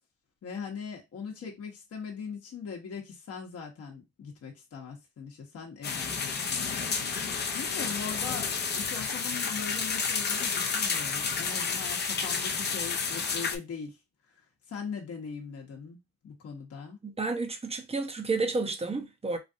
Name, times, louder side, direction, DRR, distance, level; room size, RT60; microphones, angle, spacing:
voice 1, 0.4-14.0 14.3-17.0, left 6 dB, 55° left, 1.0 m, -41 dB
sound 1, 5.8-13.6, left 5 dB, 35° left, 0.6 m, -31 dB
voice 2, 17.0-19.4, right 3 dB, 20° right, 0.8 m, -31 dB
3.3 x 2.6 x 2.6 m
cardioid pair, 90°, 30 cm